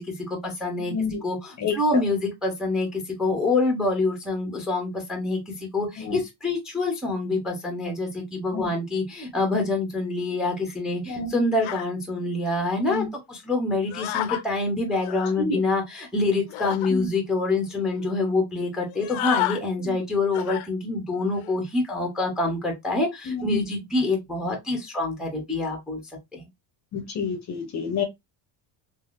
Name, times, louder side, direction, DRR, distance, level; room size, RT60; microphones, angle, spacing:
voice 1, 0.0-0.9 1.2-26.0 26.3-26.4, left 2 dB, ahead, 0.6 m, -26 dB
voice 2, 0.9-1.2 1.6-2.0 6.0-6.2 8.5-8.7 11.1-11.3 12.9-13.1 15.4-15.6 16.9-17.1 19.8-19.9 23.3-23.6 26.9-28.0, left 4 dB, 35° left, 0.6 m, -28 dB
sound 1, 11.6-11.9 12.9-13.0 13.9-14.4 14.9-15.3 16.5-16.9 17.5-17.6 17.8-18.0 18.9-19.6 20.3-20.7 21.2-21.5, left 14 dB, 75° left, 0.6 m, -30 dB
3.4 x 2.4 x 2.4 m
cardioid pair, 155°, 49 cm